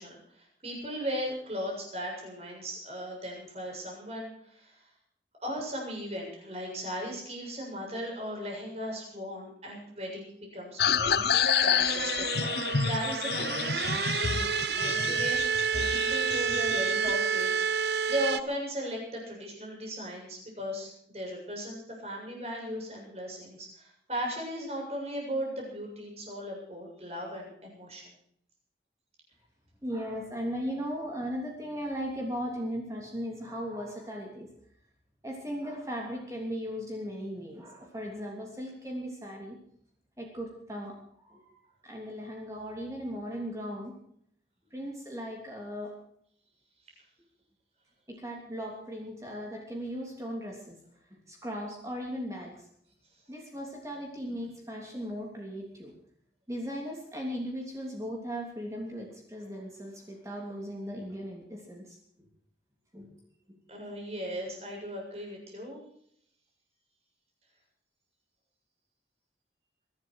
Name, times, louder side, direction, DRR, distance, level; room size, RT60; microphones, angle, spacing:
voice 1, 0.0-4.9 5.4-11.2 11.6-12.6 12.8-15.4 15.7-28.1 63.7-65.8, equal, 35° right, 0 dB, 7.3 m, -37 dB
sound 1, 10.8-17.1, left 7 dB, 65° left, 0.7 m, -29 dB
sound 2, 11.4-18.4, right 6 dB, 70° right, 0.6 m, -29 dB
voice 2, 29.8-34.5 35.2-39.5 40.2-43.9 44.7-45.9 48.2-50.8 51.1-52.7 53.3-55.9 56.5-62.0 62.9-63.1 63.5-63.6, equal, 15° right, -1 dB, 3.2 m, -37 dB
22.5 x 12.0 x 4.8 m, 0.68 s
head